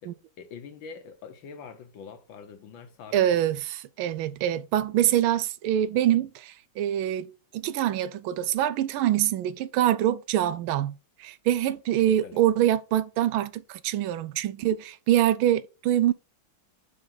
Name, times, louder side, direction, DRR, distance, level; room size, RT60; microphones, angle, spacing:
voice 1, 0.0-3.4 12.0-12.4, left 6 dB, 70° left, 1.7 m, -44 dB
voice 2, 3.1-10.9 11.2-16.1, right 12 dB, 85° right, 1.4 m, -25 dB
5.8 x 5.0 x 3.9 m
omnidirectional pair, 2.2 m